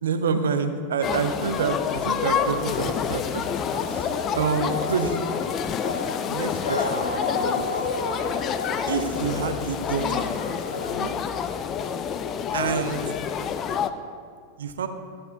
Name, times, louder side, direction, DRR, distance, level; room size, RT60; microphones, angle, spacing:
voice 1, 0.0-4.1 4.4-5.3 6.3-7.7 8.9-10.3 10.9-11.1 12.5-13.0 14.6-14.9, right 5 dB, 65° right, 8 dB, 0.6 m, -28 dB
sound 1, 1.0-13.9, left 7 dB, 30° left, 0.4 m, -28 dB
Dog, 2.2-10.9, left 3 dB, 75° left, 0.8 m, -33 dB
13.5 x 7.6 x 2.6 m, 2.1 s
figure-of-eight pair, 90°, 0 cm